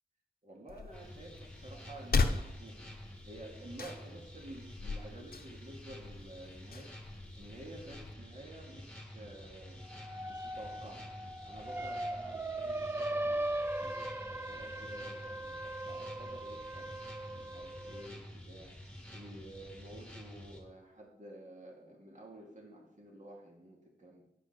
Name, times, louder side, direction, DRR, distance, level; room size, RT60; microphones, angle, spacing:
voice 1, 0.4-2.9 3.3-6.9 7.4-9.8 10.3-11.1 11.4-13.4 13.8-16.9 17.3-18.8 19.1-24.2, right 1 dB, 50° right, -1 dB, 2.2 m, -51 dB
sound 1, 0.7-8.1, left 4 dB, 65° left, 0.7 m, -38 dB
sound 2, 0.9-20.6, left 1 dB, 5° left, 1.8 m, -50 dB
sound 3, 9.8-18.1, right 1 dB, 15° right, 0.4 m, -39 dB
10.0 x 5.1 x 6.7 m, 0.81 s
wide cardioid pair, 80°, 17 cm